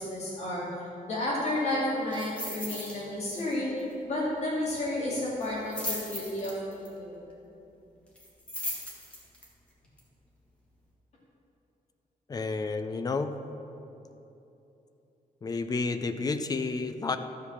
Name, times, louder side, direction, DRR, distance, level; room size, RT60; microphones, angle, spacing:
voice 1, 0.0-3.7 4.0-6.5 6.8-7.3, left 1 dB, 50° left, -6 dB, 2.3 m, -31 dB
sound 1, 2.1-3.0 3.3-3.5 3.8-3.9 5.4-6.9 8.2-9.5 10.0-10.1, equal, 10° left, 1.6 m, -37 dB
voice 2, 12.3-13.3 15.4-17.2, left 4 dB, 25° left, 9 dB, 0.4 m, -30 dB
13.0 x 4.8 x 7.1 m, 3.0 s
wide cardioid pair, 175°, 15 cm